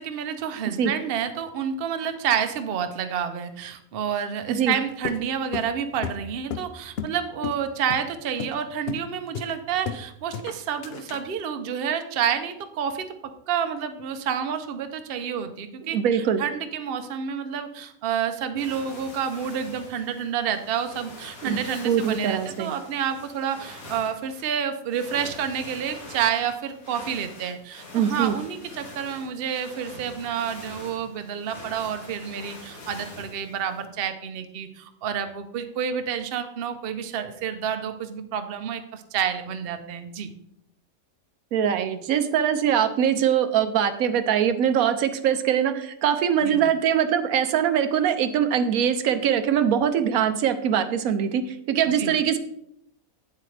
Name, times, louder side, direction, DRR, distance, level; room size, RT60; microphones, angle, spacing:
voice 1, 0.0-40.3 46.4-46.6 52.0-52.1, right 8 dB, 50° right, 8 dB, 0.8 m, -29 dB
sound 1, 5.0-7.2 7.4-7.6 7.9-8.1 8.4-8.6 8.9-9.1 9.3-10.1 10.3-11.3, left 7 dB, 60° left, 0.7 m, -33 dB
voice 2, 15.9-16.4 21.4-21.6 21.8-22.7 27.9-28.3 41.5-52.4, right 8 dB, 85° right, 9 dB, 1.1 m, -22 dB
sound 2, 18.6-33.8, left 2 dB, 75° left, 2.3 m, -44 dB
8.5 x 7.7 x 3.3 m, 0.75 s
omnidirectional pair, 1.5 m